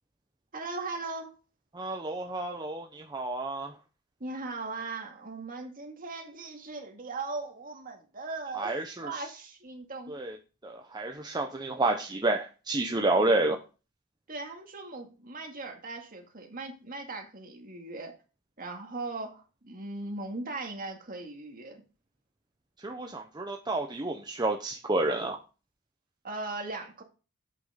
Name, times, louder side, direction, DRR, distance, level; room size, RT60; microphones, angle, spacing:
voice 1, 0.5-1.4 4.2-8.7 9.0-10.2 13.2-13.3 14.3-18.1 18.6-21.8 26.2-27.0, right 3 dB, 40° right, 2 dB, 2.1 m, -39 dB
voice 2, 1.7-3.7 8.6-9.1 10.1-10.3 10.6-13.6 22.8-25.4, right 2 dB, 20° right, 3 dB, 0.8 m, -30 dB
8.4 x 6.0 x 5.1 m, 0.33 s
head